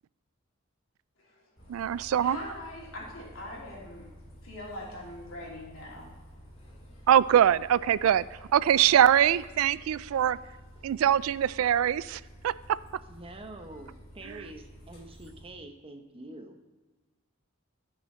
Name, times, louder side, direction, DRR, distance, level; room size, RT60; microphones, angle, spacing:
voice 1, 1.2-4.1 4.4-6.2, left 1 dB, 80° left, -4 dB, 3.0 m, -43 dB
sound 1, 1.6-15.5, equal, 30° left, 2.1 m, -51 dB
voice 2, 1.7-2.4 7.1-8.2 8.5-10.4 10.8-12.8 14.3-14.4, right 10 dB, 85° right, 19 dB, 0.3 m, -23 dB
voice 3, 13.1-16.6, right 2 dB, 30° right, 5 dB, 0.8 m, -46 dB
12.0 x 6.4 x 4.3 m, 1.2 s
head